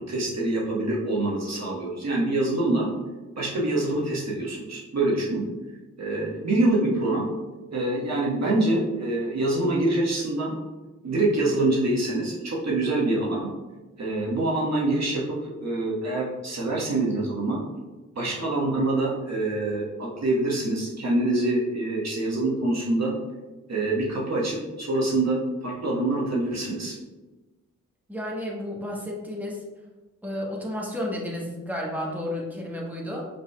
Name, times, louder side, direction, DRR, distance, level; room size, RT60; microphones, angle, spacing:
voice 1, 0.1-2.9 3.3-5.4 6.0-7.3 7.7-10.5 11.0-13.5 14.0-17.6 18.1-23.1 23.7-26.9, right 2 dB, 55° right, -4 dB, 1.4 m, -25 dB
voice 2, 28.1-29.6 30.2-33.3, left 1 dB, 5° right, -3 dB, 1.2 m, -32 dB
5.4 x 4.2 x 2.3 m, 1.2 s
supercardioid pair, 45°, 33 cm